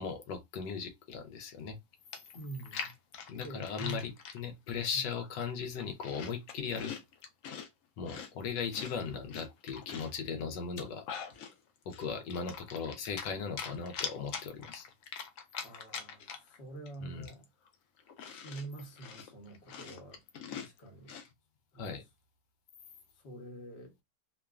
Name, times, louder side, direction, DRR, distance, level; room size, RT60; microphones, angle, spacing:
voice 1, 0.0-1.8 3.3-6.9 8.0-11.0 11.9-14.9 17.0-17.3 21.8-22.0, left 6 dB, 85° left, 1.2 m, -38 dB
Chewing mastication, 1.7-1.8 2.1-4.4 4.9-5.3 5.6-7.7 8.1-10.2 10.6-11.5 11.9-13.3 13.6-16.6 16.9-17.0 17.2-21.3, left 7 dB, 65° left, 0.8 m, -43 dB
voice 2, 2.3-2.9 3.4-4.1 4.9-5.1 15.6-17.4 18.2-20.2 20.5-21.1 21.7-22.0 23.2-23.9, right 3 dB, 45° left, 1.0 m, -46 dB
2.9 x 2.1 x 2.3 m
omnidirectional pair, 1.9 m